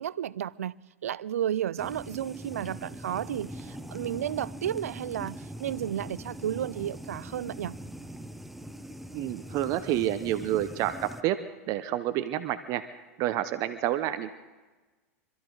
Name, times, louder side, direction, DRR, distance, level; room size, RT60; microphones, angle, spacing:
voice 1, 0.0-7.8, right 10 dB, 75° right, 0.4 m, -33 dB
sound 1, 1.8-11.2, equal, ahead, 0.8 m, -42 dB
voice 2, 9.1-10.9 11.2-11.4 11.7-14.3, right 13 dB, 45° right, 0.8 m, -29 dB
26.0 x 13.5 x 3.9 m
hypercardioid pair, 95°, 8 cm